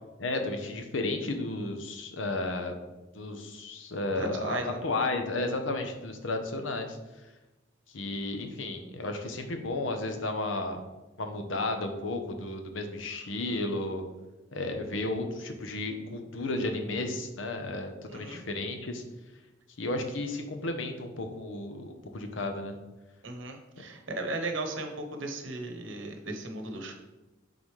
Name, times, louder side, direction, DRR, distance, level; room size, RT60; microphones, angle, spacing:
voice 1, 0.2-2.8 3.1-7.0 7.9-10.8 11.2-14.0 14.5-19.0 19.8-22.8, left 2 dB, 85° left, 5 dB, 0.8 m, -33 dB
voice 2, 4.2-4.8 18.1-18.4 23.2-26.9, right 2 dB, 75° right, 4 dB, 1.0 m, -36 dB
8.7 x 4.0 x 3.2 m, 1.1 s
head